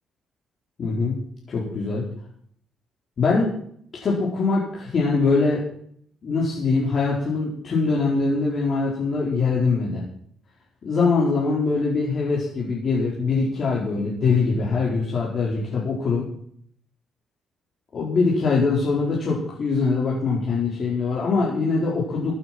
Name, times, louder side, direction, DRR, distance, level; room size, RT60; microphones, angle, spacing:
voice 1, 0.8-1.1 1.5-2.1 3.2-3.5 4.0-5.6 6.2-10.0 10.8-16.3 17.9-22.3, left 4 dB, 50° left, -5 dB, 4.6 m, -23 dB
16.5 x 9.1 x 6.2 m, 0.65 s
cardioid pair, 90°, 0 cm